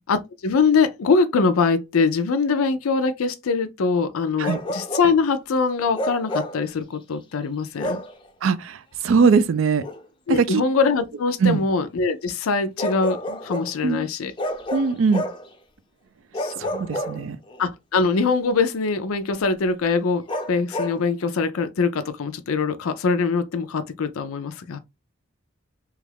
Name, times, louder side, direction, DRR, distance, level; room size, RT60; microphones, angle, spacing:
voice 1, 0.1-8.0 10.3-14.3 16.4-16.5 17.6-24.8, left 4 dB, 85° left, 0.5 m, -23 dB
Bark, 4.4-5.2 5.9-6.6 7.8-8.2 9.8-10.0 12.8-13.7 14.4-15.5 16.3-17.6 20.3-21.0, equal, 25° left, 0.4 m, -29 dB
voice 2, 8.4-9.8 10.3-10.6 11.4-11.6 13.8-14.1 14.7-15.3 16.6-17.4, right 5 dB, 70° right, 0.4 m, -21 dB
3.1 x 2.4 x 3.3 m
head